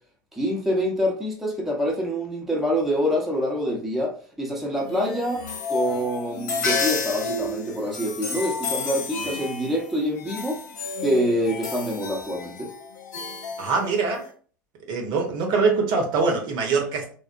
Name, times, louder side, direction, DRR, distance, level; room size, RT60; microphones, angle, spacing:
voice 1, 0.3-5.4 5.7-10.6 11.0-12.7, equal, 5° right, 0.7 m, -26 dB
sound 1, 4.8-14.3, left 4 dB, 70° left, 0.5 m, -31 dB
voice 2, 13.6-14.3 14.9-17.2, right 4 dB, 45° right, 0.8 m, -23 dB
3.2 x 2.1 x 2.4 m
figure-of-eight pair, 80°, 10 cm